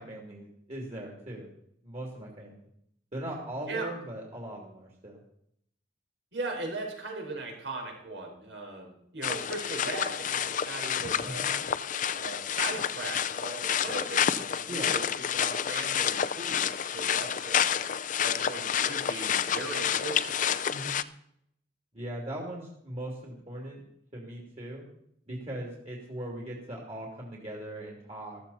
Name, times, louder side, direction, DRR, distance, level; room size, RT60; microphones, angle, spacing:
voice 1, 0.0-1.5 1.8-2.7 3.1-5.2 11.2-11.5 14.7-14.9 20.7-21.0 21.9-23.8 24.1-24.8 25.3-28.4, right 1 dB, 35° right, -1 dB, 2.9 m, -39 dB
voice 2, 6.3-11.6 12.1-17.7 18.2-20.4, right 2 dB, 80° right, 1 dB, 4.6 m, -38 dB
sound 1, 9.2-21.0, left 8 dB, 45° left, 0.5 m, -29 dB
14.5 x 14.0 x 4.2 m, 0.71 s
head